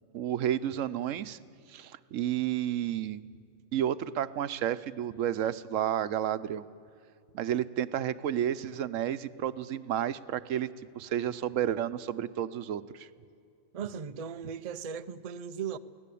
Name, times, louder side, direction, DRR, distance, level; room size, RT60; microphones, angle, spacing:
voice 1, 0.1-1.4 1.7-3.2 3.7-6.6 7.3-10.7 10.9-13.1, right 10 dB, 85° right, 1.1 m, -31 dB
voice 2, 13.7-15.8, right 7 dB, 40° right, 0.5 m, -37 dB
24.0 x 17.0 x 8.5 m
omnidirectional pair, 1.3 m